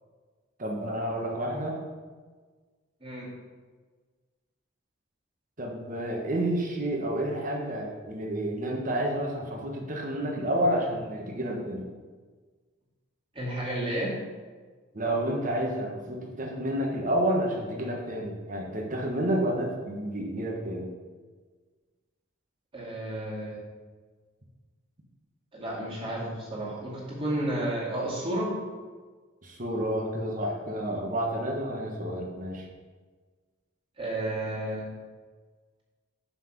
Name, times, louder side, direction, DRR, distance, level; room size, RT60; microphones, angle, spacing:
voice 1, 0.6-1.8 5.6-11.9 14.9-20.9 29.4-32.7, right 1 dB, 40° right, 0 dB, 1.3 m, -30 dB
voice 2, 3.0-3.3 13.3-14.1 22.7-23.6 25.5-28.5 34.0-34.9, right 1 dB, 25° right, -5 dB, 2.3 m, -32 dB
5.9 x 5.8 x 5.9 m, 1.4 s
head